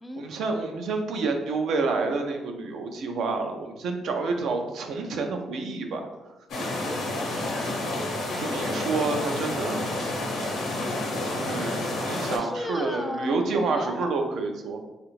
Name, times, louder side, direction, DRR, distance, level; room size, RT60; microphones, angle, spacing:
voice 1, 0.2-6.1 8.4-9.8 11.4-14.8, right 3 dB, 75° right, 4 dB, 0.4 m, -28 dB
sound 1, 6.5-12.4, left 1 dB, 80° left, 0.8 m, -29 dB
voice 2, 7.1-7.8 12.3-14.1, left 1 dB, 15° left, 6 dB, 0.3 m, -36 dB
3.2 x 2.4 x 3.0 m, 1.0 s
cardioid pair, 90°, 0 cm